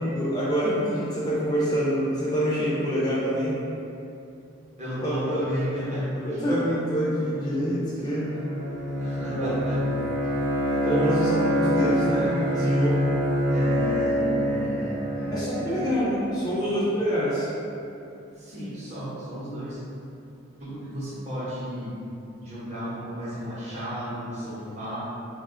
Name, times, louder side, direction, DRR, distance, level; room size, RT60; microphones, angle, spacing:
voice 1, 0.0-3.6 5.0-5.4 6.2-8.4 9.2-9.5 10.7-13.1 15.3-17.5, equal, 20° left, -8 dB, 0.4 m, -26 dB
voice 2, 4.8-6.4 9.0-9.8 13.5-15.8 16.6-16.7 18.4-19.8 20.6-22.0 22.4-25.0, equal, 30° right, -9 dB, 0.7 m, -33 dB
Bowed string instrument, 8.1-15.9, equal, 75° right, 0.7 m, -26 dB
2.8 x 2.2 x 3.5 m, 2.7 s
head